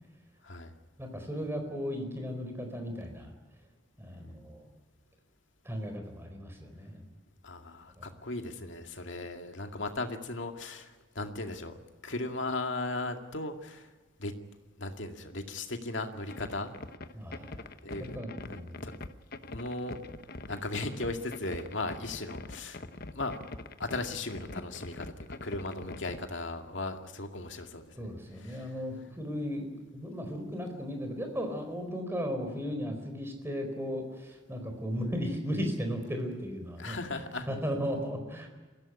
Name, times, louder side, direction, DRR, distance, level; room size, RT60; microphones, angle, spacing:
voice 1, 1.0-3.3 4.0-4.7 5.6-7.1 8.0-8.1 17.1-18.9 28.0-37.0 37.5-38.5, equal, 10° right, 5 dB, 4.4 m, -36 dB
voice 2, 7.4-11.8 12.0-13.9 14.2-14.3 14.8-16.7 17.8-18.2 18.5-18.9 19.4-20.0 20.5-22.8 23.1-23.4 23.8-28.1 28.4-28.7 36.8-37.5, left 2 dB, 65° left, 5 dB, 2.2 m, -37 dB
sound 1, 16.3-26.2, left 2 dB, 50° left, 1.0 m, -43 dB
23.0 x 16.0 x 10.0 m, 1.3 s
head